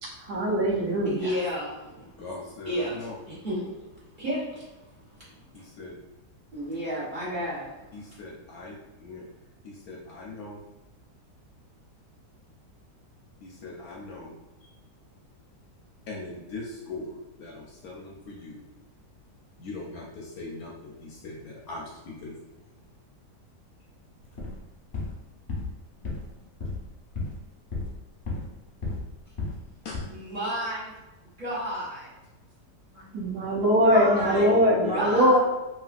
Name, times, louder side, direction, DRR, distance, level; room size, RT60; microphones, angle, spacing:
voice 1, 0.0-1.1 33.1-35.4, equal, 70° right, -3 dB, 1.3 m, -22 dB
voice 2, 1.0-2.2 2.6-3.0 3.2-3.6 4.2-4.6 6.5-8.0 30.1-30.9 31.4-32.1 32.9-33.0 33.9-34.6 34.9-35.4, equal, 35° right, -8 dB, 0.9 m, -32 dB
voice 3, 2.2-3.2 5.5-5.9 7.9-8.7 9.0-9.3 9.6-10.6 13.4-14.3 16.1-18.6 19.6-22.3 29.8-30.0 34.1-35.3, left 3 dB, 70° left, -2 dB, 0.9 m, -39 dB
sound 1, 24.2-24.6 24.9-25.2 25.5-25.7 26.0-26.3 26.6-26.9 27.1-27.4 27.7-28.5 28.8-29.1 29.4-29.6 29.9-30.0, left 3 dB, 45° left, 0.8 m, -33 dB
3.2 x 2.8 x 2.4 m, 1.0 s
omnidirectional pair, 1.8 m